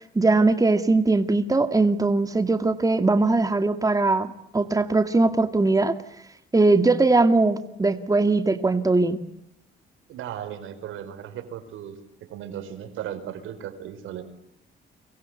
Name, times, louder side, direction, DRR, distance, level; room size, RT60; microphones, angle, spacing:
voice 1, 0.0-5.9 6.5-9.2, right 3 dB, 15° right, 9 dB, 2.1 m, -20 dB
voice 2, 10.1-14.2, right 10 dB, 85° right, 9 dB, 5.0 m, -36 dB
30.0 x 24.5 x 8.1 m, 0.78 s
cardioid pair, 90°, 20 cm